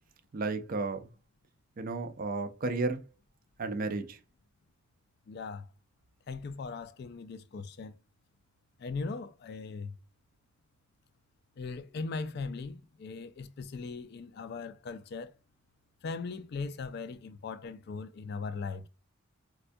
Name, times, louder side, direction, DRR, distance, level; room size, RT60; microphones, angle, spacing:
voice 1, 0.3-1.1 1.8-3.0 3.6-4.2, right 3 dB, 40° right, 0.4 m, -33 dB
voice 2, 5.3-5.7 6.3-7.9 8.8-9.9 11.6-15.3 16.0-18.9, left 4 dB, 50° left, 0.3 m, -39 dB
4.3 x 2.2 x 2.5 m
head